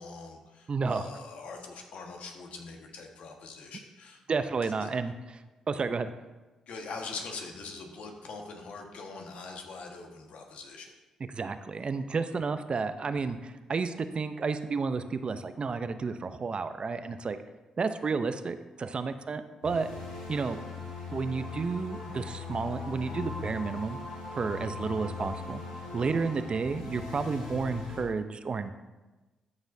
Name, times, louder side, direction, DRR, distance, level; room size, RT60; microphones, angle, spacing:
voice 1, 0.0-4.2 4.6-4.9 6.7-10.9, left 4 dB, 70° left, 2 dB, 1.4 m, -43 dB
voice 2, 0.7-1.1 4.3-5.1 5.7-6.1 11.3-17.4 17.8-19.9 20.3-20.6 21.1-24.0 24.4-25.6 25.9-28.7, right 4 dB, 45° right, 10 dB, 0.6 m, -31 dB
sound 1, 19.6-28.0, left 4 dB, 90° left, 2.2 m, -40 dB
13.0 x 7.0 x 2.7 m, 1.2 s
hypercardioid pair, 45°, 2 cm